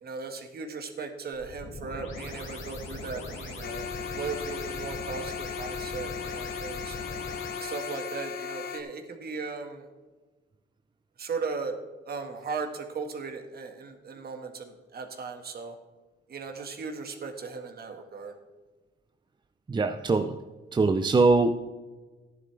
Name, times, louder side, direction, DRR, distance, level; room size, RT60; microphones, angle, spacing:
voice 1, 0.0-7.0 7.6-9.9 11.2-11.7 12.1-15.8 16.3-18.3, right 4 dB, 50° right, 5 dB, 1.8 m, -37 dB
sound 1, 1.3-8.1, left 2 dB, 80° left, 2.6 m, -40 dB
sound 2, 3.6-8.8, left 7 dB, 50° left, 1.4 m, -37 dB
voice 2, 19.7-20.4 20.7-21.5, right 3 dB, 25° right, 8 dB, 0.6 m, -22 dB
13.5 x 11.0 x 3.4 m, 1.3 s
cardioid pair, 90°, 20 cm